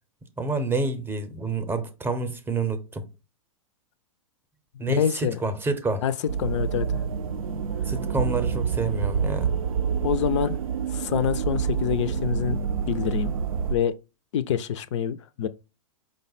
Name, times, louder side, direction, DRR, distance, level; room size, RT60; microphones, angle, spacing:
voice 1, 0.4-3.0 4.8-6.0 7.9-9.5, right 3 dB, 10° right, 0.6 m, -28 dB
voice 2, 5.0-5.4 6.0-6.1 6.4-7.0 10.0-10.6 10.9-12.6 12.9-13.3 13.7-13.9 14.3-15.5, left 9 dB, 55° left, 0.4 m, -26 dB
sound 1, 6.3-13.7, right 7 dB, 80° right, 0.5 m, -27 dB
5.1 x 2.1 x 4.0 m
figure-of-eight pair, 105°, 18 cm